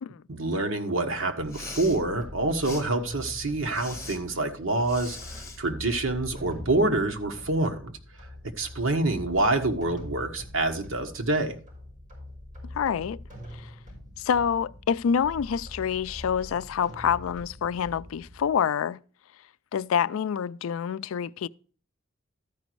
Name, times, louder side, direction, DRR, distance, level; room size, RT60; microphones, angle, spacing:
voice 1, 0.3-7.9 8.6-11.6, right 2 dB, 80° right, 1.4 m, -27 dB
Respiratory sounds, 1.4-2.0 2.6-2.8 3.7-4.2 4.9-5.6, left 4 dB, 15° left, 1.8 m, -41 dB
sound 1, 1.4-18.6, left 1 dB, 40° right, 5.6 m, -44 dB
voice 2, 12.7-13.2 13.6-13.7 14.2-19.0 19.7-21.5, left 7 dB, 85° left, 0.4 m, -27 dB
13.0 x 5.2 x 4.6 m
head